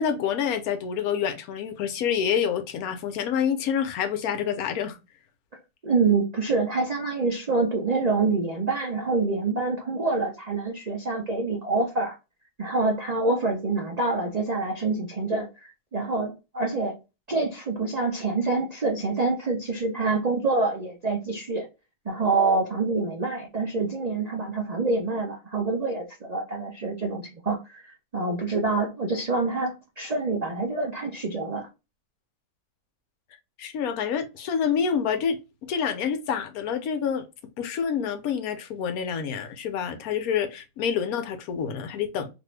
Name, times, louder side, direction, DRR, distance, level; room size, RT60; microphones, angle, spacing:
voice 1, 0.0-5.0 33.6-37.3 37.6-42.3, left 7 dB, 70° left, 1.0 m, -27 dB
voice 2, 5.8-12.2 12.6-17.0 17.3-21.7 22.1-31.7, right 3 dB, 85° right, 0.3 m, -26 dB
2.7 x 2.6 x 3.1 m
omnidirectional pair, 1.7 m